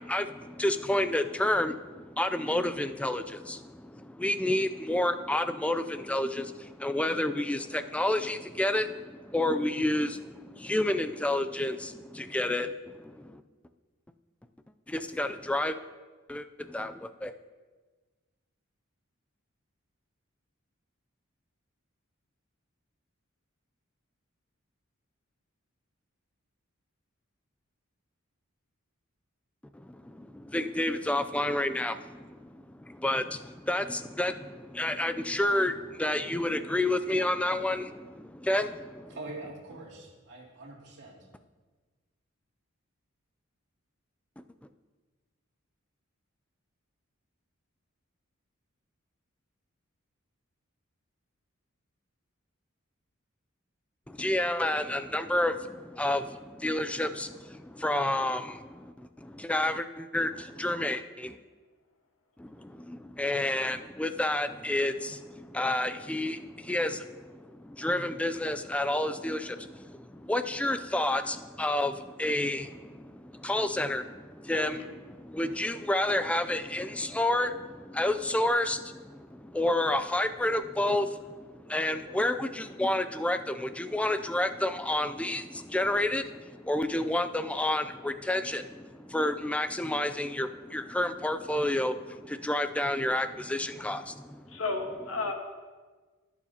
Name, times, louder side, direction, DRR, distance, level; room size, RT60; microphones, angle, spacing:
voice 1, 0.0-13.4 14.9-15.8 16.3-17.3 29.7-39.2 54.1-61.4 62.4-94.6, left 1 dB, 5° left, 9 dB, 0.3 m, -30 dB
voice 2, 39.1-41.2, right 2 dB, 55° right, -3 dB, 2.4 m, -44 dB
voice 3, 94.5-95.3, left 3 dB, 80° left, 3 dB, 1.4 m, -32 dB
20.0 x 7.2 x 2.8 m, 1.4 s
head